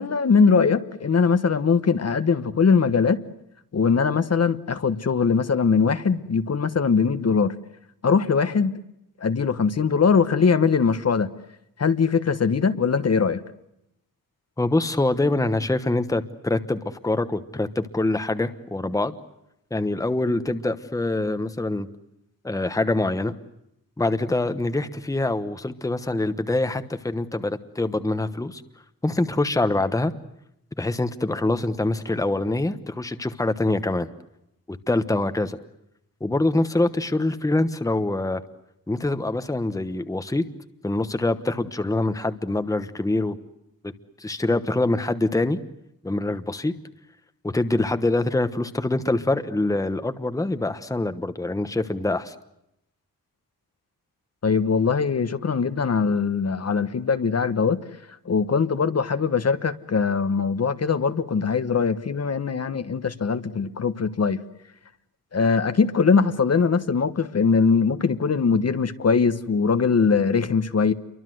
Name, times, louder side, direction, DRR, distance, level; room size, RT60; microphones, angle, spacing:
voice 1, 0.0-3.2 3.7-7.5 8.0-8.8 9.2-11.3 11.8-13.4 54.4-57.8 58.2-64.4 65.3-70.9, left 5 dB, 45° left, 1.2 m, -21 dB
voice 2, 14.6-19.2 19.7-21.9 22.4-23.3 24.0-28.6 29.0-30.1 30.8-34.1 34.7-35.6 36.2-38.4 38.9-40.4 40.8-43.4 44.2-45.6 46.0-46.7 47.4-52.3, left 2 dB, 10° left, 1.1 m, -24 dB
29.5 x 24.0 x 7.8 m
wide cardioid pair, 170°, 35 cm